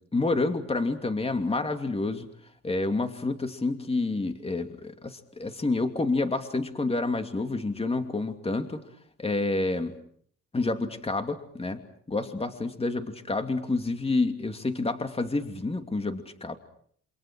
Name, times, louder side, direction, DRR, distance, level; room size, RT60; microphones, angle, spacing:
voice 1, 0.1-2.3 2.6-8.8 9.2-10.0 10.5-11.8 12.1-16.6, left 3 dB, 20° left, 7 dB, 2.8 m, -28 dB
28.0 x 26.0 x 6.3 m, 0.62 s
cardioid pair, 90°, 30 cm